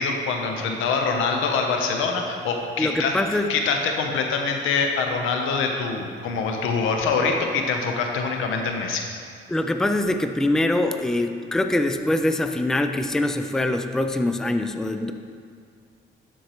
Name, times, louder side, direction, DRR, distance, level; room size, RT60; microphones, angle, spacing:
voice 1, 0.0-3.1 3.5-9.1, left 4 dB, 90° left, 3 dB, 0.8 m, -24 dB
voice 2, 2.8-3.5 9.5-15.1, left 1 dB, 5° left, 7 dB, 0.3 m, -23 dB
11.5 x 4.6 x 3.0 m, 2.2 s
cardioid pair, 90°, 20 cm